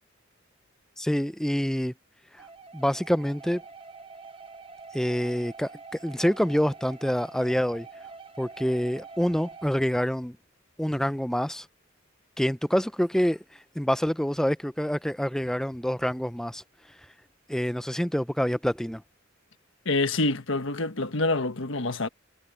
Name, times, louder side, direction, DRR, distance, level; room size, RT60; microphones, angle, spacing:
voice 1, 1.0-1.9 2.7-3.6 4.9-5.7 6.0-7.9 8.4-10.4 10.8-11.7 12.4-13.4 13.8-16.6 17.5-19.0, equal, 5° left, 0.5 m, -26 dB
sound 1, 2.4-9.7, right 4 dB, 25° right, 1.0 m, -46 dB
voice 2, 19.8-22.1, left 2 dB, 65° left, 1.4 m, -26 dB
head